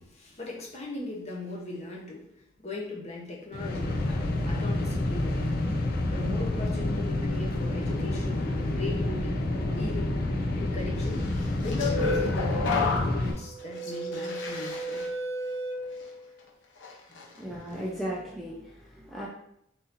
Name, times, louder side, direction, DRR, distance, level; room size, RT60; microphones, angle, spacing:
voice 1, 0.0-2.3 2.6-5.6 6.1-9.4 9.7-10.2 10.5-11.3 11.6-15.0 17.1-17.2 17.8-18.0, left 3 dB, 35° left, -2 dB, 1.1 m, -38 dB
sound 1, 3.5-13.3, left 1 dB, 50° left, 0.6 m, -28 dB
sound 2, 11.3-16.4 16.8-17.2, left 2 dB, 75° left, 0.9 m, -32 dB
voice 2, 17.4-19.3, equal, ahead, -5 dB, 0.6 m, -36 dB
4.0 x 2.8 x 4.0 m, 0.73 s
head